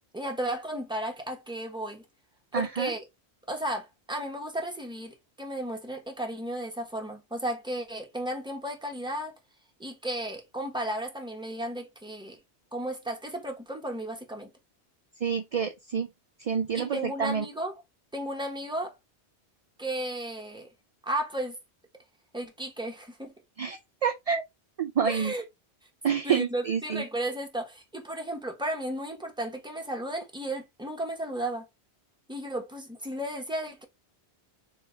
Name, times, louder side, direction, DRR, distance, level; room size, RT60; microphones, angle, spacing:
voice 1, 0.1-2.0 2.5-3.0 3.5-9.3 9.8-12.4 12.7-14.5 16.7-17.7 18.1-18.9 19.8-20.7 21.0-21.6 22.3-23.3 25.0-25.4 26.2-31.7 32.3-33.8, right 1 dB, 5° right, 1.0 m, -34 dB
voice 2, 2.5-2.9 15.2-16.1 16.4-17.4 23.6-24.4 24.8-25.3 26.0-27.0, right 7 dB, 55° right, 0.4 m, -28 dB
3.5 x 3.2 x 4.4 m
omnidirectional pair, 1.1 m